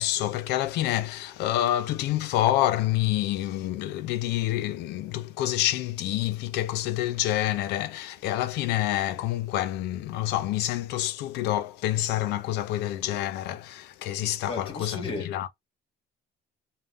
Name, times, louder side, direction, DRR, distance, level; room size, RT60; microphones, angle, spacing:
voice 1, 0.0-15.5, left 13 dB, 80° left, 0.5 m, -27 dB
voice 2, 14.4-15.5, left 3 dB, 30° left, 1.5 m, -35 dB
3.3 x 2.2 x 2.5 m
cardioid pair, 110°, 17 cm